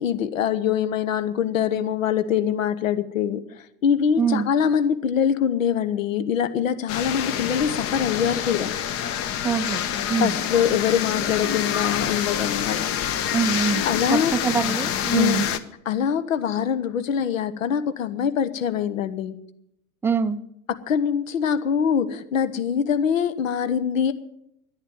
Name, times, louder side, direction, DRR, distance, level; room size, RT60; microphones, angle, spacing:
voice 1, 0.0-3.4 3.8-8.7 10.2-12.9 13.8-14.4 15.1-15.4 15.9-19.4 20.9-24.1, left 8 dB, 65° left, 12 dB, 1.0 m, -23 dB
voice 2, 4.2-4.5 9.4-9.8 10.1-10.4 13.3-13.8 14.1-15.5 20.0-20.4, right 5 dB, 5° right, 11 dB, 0.5 m, -24 dB
sound 1, 6.9-15.6, left 9 dB, 35° left, 0.8 m, -27 dB
10.5 x 10.5 x 9.1 m, 0.80 s
figure-of-eight pair, 80°, 42 cm